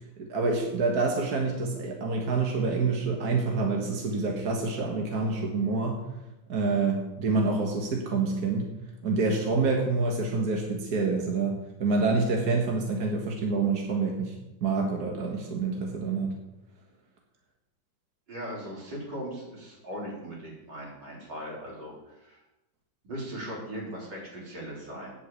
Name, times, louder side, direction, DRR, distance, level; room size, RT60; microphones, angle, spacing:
voice 1, 0.2-6.0 6.5-8.7 9.0-14.3 14.6-16.4, right 3 dB, 60° right, 0 dB, 1.9 m, -27 dB
voice 2, 18.3-22.4 23.0-25.1, equal, 90° right, -4 dB, 4.4 m, -39 dB
8.8 x 8.0 x 8.2 m, 0.98 s
omnidirectional pair, 1.9 m